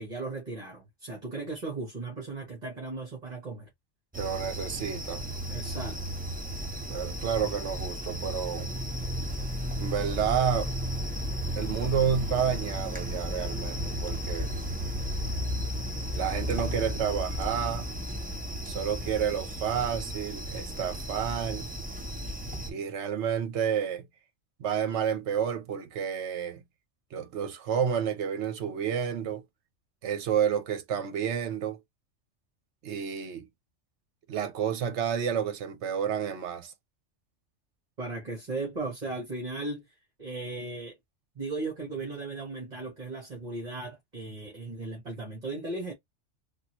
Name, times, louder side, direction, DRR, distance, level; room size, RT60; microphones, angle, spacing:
voice 1, 0.0-3.7 5.5-6.0 38.0-39.8 40.2-41.0 41.3-45.9, right 3 dB, 35° right, 1.4 m, -36 dB
sound 1, 4.1-22.7, equal, 10° right, 0.5 m, -34 dB
voice 2, 4.1-5.2 6.9-8.7 9.8-10.7 11.6-14.5 16.2-17.9 18.7-21.7 22.7-24.1 24.6-26.6 27.1-29.4 30.0-31.8 32.8-33.5 34.3-36.7, right 8 dB, 65° right, 1.0 m, -30 dB
3.7 x 2.3 x 3.0 m
omnidirectional pair, 1.3 m